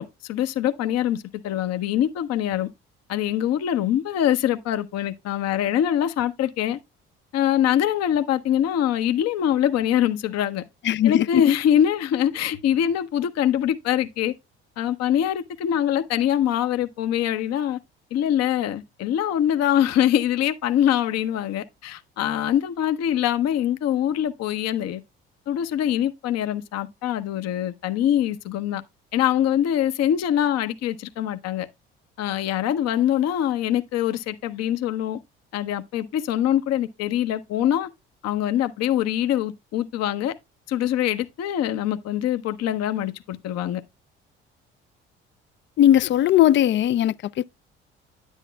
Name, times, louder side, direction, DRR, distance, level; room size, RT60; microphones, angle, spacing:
voice 1, 0.0-2.7 3.1-6.8 7.3-10.6 11.0-14.3 14.8-17.8 18.1-25.0 25.5-28.8 29.1-31.7 32.2-35.2 35.5-37.9 38.2-40.3 40.7-43.8, left 10 dB, 60° left, 0.8 m, -23 dB
voice 2, 10.8-11.4 45.8-47.4, left 12 dB, 40° left, 0.4 m, -18 dB
9.9 x 8.2 x 2.2 m
hypercardioid pair, 55°, 29 cm